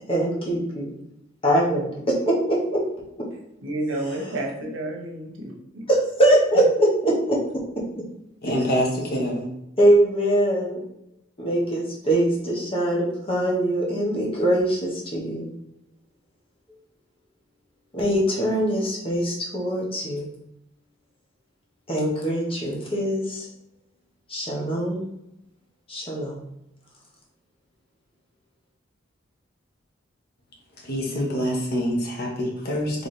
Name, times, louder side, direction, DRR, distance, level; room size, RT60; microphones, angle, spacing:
voice 1, 0.1-0.9 1.4-2.8 4.0-4.4 5.9-7.4 7.9-8.0 9.8-10.8 11.4-15.5 17.9-20.3 21.9-23.5 24.3-25.1 25.9-26.4, right 1 dB, 30° left, -4 dB, 1.0 m, -22 dB
voice 2, 3.6-5.8, right 1 dB, 85° right, 0 dB, 1.0 m, -30 dB
voice 3, 8.4-9.5 30.8-33.1, equal, 55° left, -1 dB, 1.1 m, -25 dB
4.2 x 3.3 x 3.2 m, 0.85 s
head